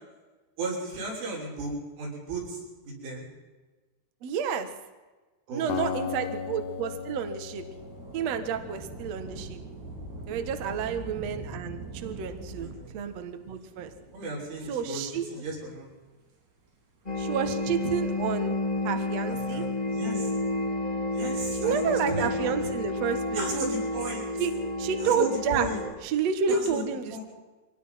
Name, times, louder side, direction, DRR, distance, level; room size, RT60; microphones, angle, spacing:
voice 1, 0.6-3.3 5.5-5.9 10.7-10.9 12.6-12.9 14.1-15.9 19.3-20.3 21.1-22.5 23.3-24.5 25.0-25.8 26.5-26.8 27.1-27.2, right 2 dB, 85° right, -3 dB, 8.9 m, -35 dB
voice 2, 4.2-4.7 5.5-7.6 8.1-9.6 10.3-13.9 14.7-15.2 17.2-18.6 18.8-19.6 21.5-23.5 24.4-24.5 24.8-25.7 26.0-27.2, right 6 dB, 65° right, 7 dB, 1.6 m, -30 dB
Acoustic guitar, 5.7-8.9, left 7 dB, 75° left, 3.5 m, -36 dB
Thunder / Rain, 6.4-15.3 16.1-16.2 17.1-18.4 19.9-20.7, right 2 dB, 40° right, 4.4 m, -44 dB
sound 1, 17.0-25.9, left 1 dB, 55° left, 0.4 m, -31 dB
24.5 x 19.0 x 5.8 m, 1.2 s
omnidirectional pair, 5.4 m